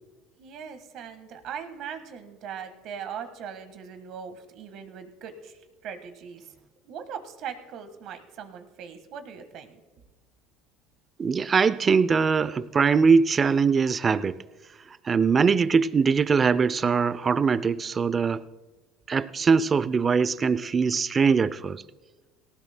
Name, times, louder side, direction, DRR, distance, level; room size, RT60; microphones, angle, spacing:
voice 1, 0.4-6.5 6.8-9.8, right 7 dB, 55° right, 1.5 m, -40 dB
voice 2, 11.2-14.4 15.0-18.4 19.1-21.8, right 5 dB, 25° right, 0.5 m, -22 dB
18.5 x 18.5 x 2.2 m
cardioid pair, 125°, 0 cm